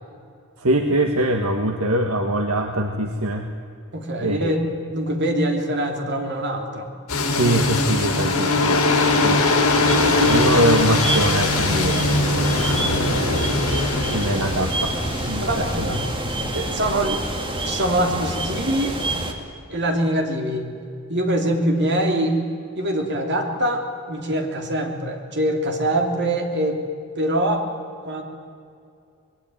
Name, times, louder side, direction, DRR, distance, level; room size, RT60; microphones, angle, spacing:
voice 1, 0.6-3.4 4.2-4.5 7.3-8.8 9.2-9.4 10.3-12.1 12.8-13.5 14.1-14.9 15.2-15.9, right 1 dB, 70° right, 5 dB, 1.6 m, -23 dB
voice 2, 3.9-4.6 4.9-6.9 9.7-10.4 15.4-16.2 16.5-17.2 17.6-19.0 19.7-20.7 21.1-22.4 22.7-26.8 27.2-27.6 28.0-28.2, right 1 dB, 50° right, 4 dB, 3.2 m, -24 dB
sound 1, 7.1-16.9, left 2 dB, 70° left, 6.2 m, -21 dB
sound 2, 9.9-19.3, right 1 dB, 20° right, 2.5 m, -27 dB
25.5 x 20.5 x 9.2 m, 2.4 s
head